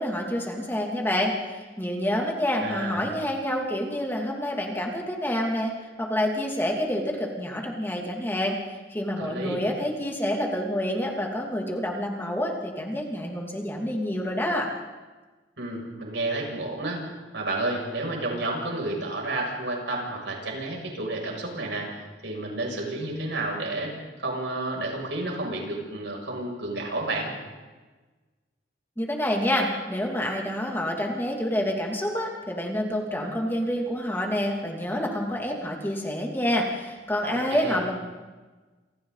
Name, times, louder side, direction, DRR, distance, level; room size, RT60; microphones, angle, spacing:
voice 1, 0.0-5.7 6.0-14.7 29.0-37.9, left 1 dB, 10° left, 0 dB, 2.8 m, -28 dB
voice 2, 2.6-3.1 9.2-9.6 15.6-23.9 24.2-27.3 37.5-37.8, right 2 dB, 85° right, 0 dB, 7.0 m, -31 dB
28.5 x 27.5 x 4.1 m, 1.3 s
head